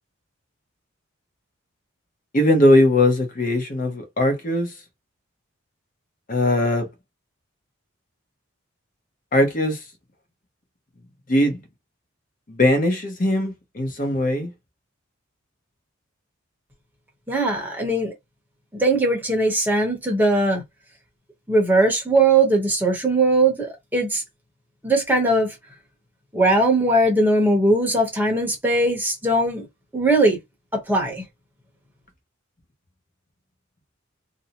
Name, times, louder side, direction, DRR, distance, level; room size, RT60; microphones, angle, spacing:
voice 1, 2.3-4.7 6.3-6.9 9.3-9.8 11.3-11.6 12.5-14.5, left 1 dB, 40° left, 0.8 m, -20 dB
voice 2, 17.3-18.1 18.7-20.6 21.5-23.7 23.9-24.2 24.8-25.5 26.3-29.7 29.9-30.4 30.7-31.2, right 2 dB, 10° right, 0.9 m, -19 dB
2.7 x 2.0 x 2.8 m
head